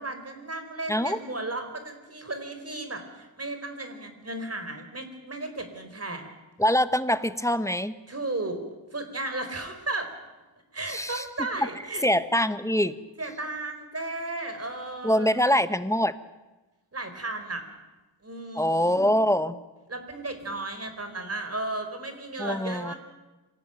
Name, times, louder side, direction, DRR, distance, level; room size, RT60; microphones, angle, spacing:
voice 1, 0.0-6.3 8.1-8.6 8.9-10.1 10.7-12.0 13.2-15.4 16.9-17.6 18.2-19.0 19.9-22.9, right 2 dB, 30° right, 7 dB, 4.5 m, -34 dB
voice 2, 0.9-1.2 6.6-7.9 10.9-11.5 12.0-13.0 15.0-16.1 18.6-19.6 22.4-22.9, equal, 5° left, 12 dB, 1.1 m, -24 dB
26.0 x 18.0 x 9.2 m, 1.2 s
wide cardioid pair, 85°, 46 cm